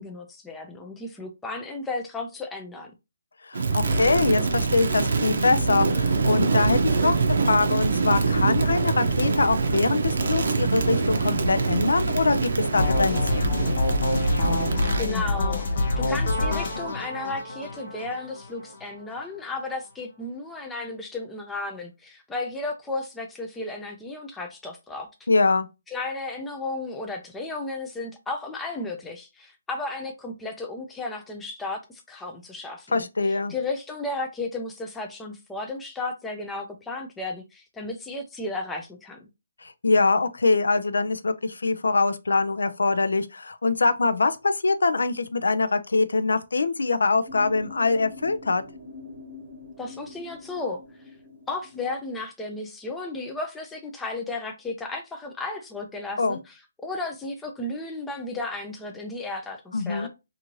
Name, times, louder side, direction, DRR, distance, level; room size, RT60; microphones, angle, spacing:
voice 1, 0.0-2.9 15.0-25.3 25.9-33.1 33.5-39.3 49.8-50.8 51.5-56.5 56.8-60.1, left 2 dB, 5° left, 0.3 m, -34 dB
voice 2, 3.4-13.5 25.3-25.7 32.9-33.5 39.6-48.6 56.2-56.4 59.7-60.1, left 3 dB, 85° left, 0.4 m, -23 dB
Crackle, 3.5-15.1, right 4 dB, 60° right, 0.5 m, -24 dB
sound 1, 12.8-18.7, left 2 dB, 50° left, 0.7 m, -26 dB
sound 2, 47.3-52.2, left 3 dB, 15° right, 1.0 m, -44 dB
2.6 x 2.5 x 2.9 m
hypercardioid pair, 170°, 0 cm